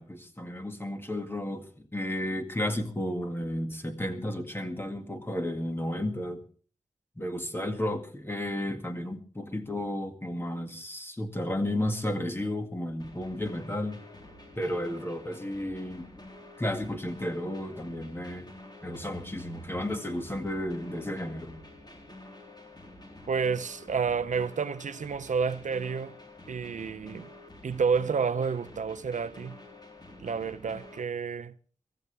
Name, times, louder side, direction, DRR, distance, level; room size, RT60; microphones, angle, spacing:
voice 1, 0.0-6.4 7.2-14.0 14.6-16.1 16.6-18.5 18.8-21.6, left 1 dB, 20° left, 2.1 m, -33 dB
sound 1, 13.0-31.0, left 2 dB, 35° left, 3.8 m, -49 dB
voice 2, 23.3-26.2 26.5-27.3 27.6-29.6 30.2-31.5, right 5 dB, 85° right, 0.7 m, -30 dB
23.5 x 14.5 x 3.4 m
wide cardioid pair, 100°, 12 cm